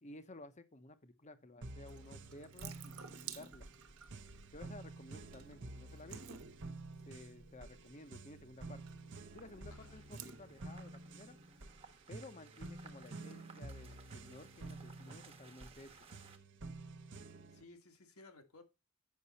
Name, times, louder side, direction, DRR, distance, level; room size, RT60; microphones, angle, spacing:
voice 1, 0.0-3.7 4.5-6.4 7.1-8.8 9.3-11.4 12.1-16.1, left 2 dB, 30° left, 0.9 m, -54 dB
sound 1, 1.6-17.6, right 2 dB, 55° right, 0.8 m, -50 dB
Water tap faucet / Sink (filling or washing) / Drip, 1.8-11.7, right 7 dB, 70° right, 1.2 m, -55 dB
sound 2, 9.3-16.4, right 4 dB, 25° right, 1.2 m, -61 dB
voice 2, 17.5-18.6, left 3 dB, 80° left, 1.7 m, -58 dB
8.5 x 6.1 x 4.1 m
head